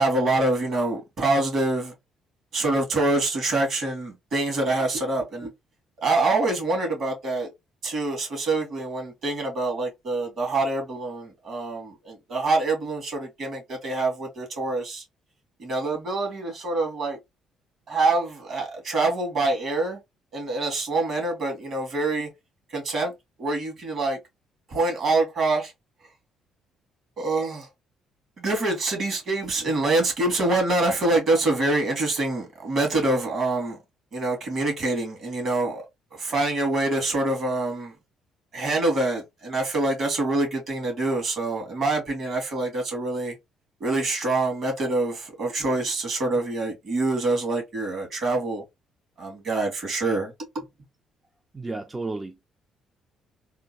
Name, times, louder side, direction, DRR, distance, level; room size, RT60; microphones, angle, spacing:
voice 1, 0.0-1.9 2.5-5.5 6.0-7.5 7.8-15.0 15.6-17.2 17.9-20.0 20.3-22.3 22.7-23.1 23.4-24.2 24.7-25.7 27.2-27.7 28.4-33.8 34.1-35.8 36.1-38.0 38.5-43.4 43.8-48.6 49.2-50.6, right 2 dB, 55° right, 2.3 m, -25 dB
voice 2, 51.5-52.5, right 3 dB, 20° right, 0.4 m, -33 dB
3.7 x 2.5 x 2.8 m
cardioid pair, 110°, 0 cm